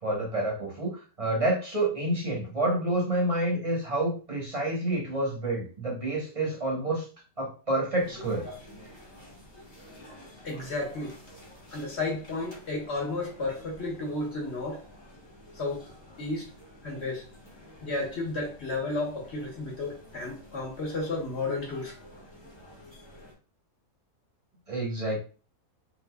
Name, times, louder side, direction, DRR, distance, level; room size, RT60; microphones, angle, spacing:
voice 1, 0.0-7.1 7.4-8.5 24.7-25.2, right 1 dB, 25° right, 1.0 m, -28 dB
sound 1, 8.0-23.3, left 1 dB, 20° left, 1.0 m, -50 dB
voice 2, 10.4-11.1 11.7-14.8 15.5-15.8 16.2-16.5 16.8-17.2 17.8-21.9, left 2 dB, 45° left, 1.3 m, -32 dB
4.0 x 2.5 x 2.3 m
omnidirectional pair, 1.7 m